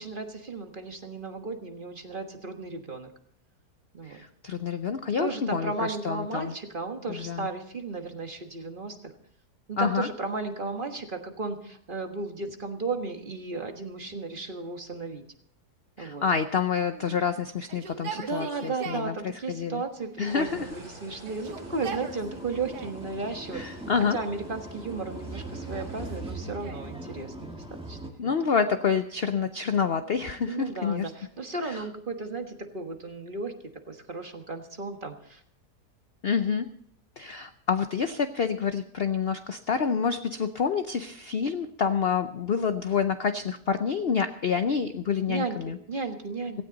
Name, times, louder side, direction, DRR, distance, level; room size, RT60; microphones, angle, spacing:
voice 1, 0.0-3.1 3.9-4.2 5.2-9.1 9.7-15.2 16.0-16.2 18.1-28.3 30.4-33.5 33.9-35.4 45.3-46.6, right 3 dB, 35° right, 5 dB, 1.5 m, -34 dB
voice 2, 4.0-6.5 7.1-7.5 9.8-10.1 16.0-19.8 20.2-20.7 23.5-24.2 28.2-31.1 31.6-31.8 36.2-36.7 37.2-45.8, left 6 dB, 55° left, 9 dB, 0.7 m, -28 dB
Yell, 16.8-19.1 20.0-20.8 21.2-23.0 23.8-24.4 25.1-26.9 28.3-29.2 30.0-31.7, right 6 dB, 80° right, 2.1 m, -44 dB
sound 1, 20.3-26.2, right 2 dB, 50° right, 8.1 m, -49 dB
sound 2, 21.4-28.1, right 1 dB, 5° right, 1.7 m, -40 dB
17.5 x 16.5 x 4.0 m, 0.67 s
omnidirectional pair, 1.8 m